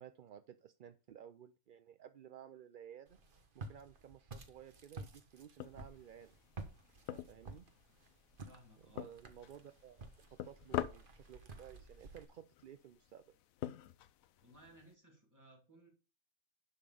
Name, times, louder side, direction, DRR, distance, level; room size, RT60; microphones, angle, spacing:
voice 1, 0.0-3.2 3.5-6.3 7.1-7.6 8.9-13.2, right 9 dB, 60° right, 10 dB, 0.5 m, -55 dB
Walk footsteps, 3.1-12.3, right 3 dB, 40° right, 1.3 m, -53 dB
sound 1, 5.6-14.9, left 12 dB, 75° left, 1.0 m, -47 dB
voice 2, 8.4-9.1 14.4-15.9, right 1 dB, 10° right, 1 dB, 2.6 m, -61 dB
11.0 x 3.7 x 6.8 m, 0.34 s
omnidirectional pair, 1.5 m